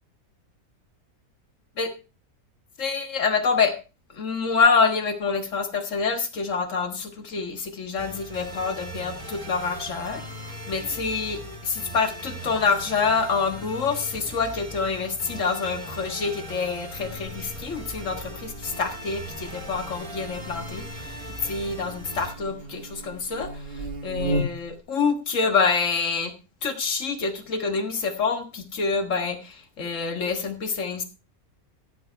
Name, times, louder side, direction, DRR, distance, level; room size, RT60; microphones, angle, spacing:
voice 1, 2.8-3.7 4.1-10.2 10.7-21.2 21.4-26.3 26.6-31.0, left 5 dB, 55° left, 7 dB, 1.9 m, -26 dB
sound 1, 8.0-22.3, equal, 20° right, 2.3 m, -39 dB
Buzz, 17.0-24.8, right 1 dB, 40° right, 1.5 m, -36 dB
14.0 x 8.4 x 4.6 m, 0.32 s
omnidirectional pair, 1.6 m